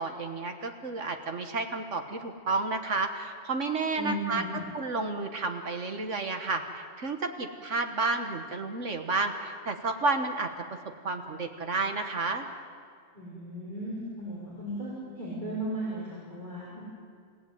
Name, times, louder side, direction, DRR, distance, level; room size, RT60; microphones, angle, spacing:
voice 1, 0.0-4.4 4.7-10.5 11.0-12.4, right 3 dB, 75° right, 6 dB, 1.8 m, -31 dB
voice 2, 3.9-4.7 13.1-16.8, right 1 dB, 35° right, -7 dB, 6.3 m, -36 dB
28.5 x 16.5 x 9.5 m, 2.2 s
omnidirectional pair, 1.3 m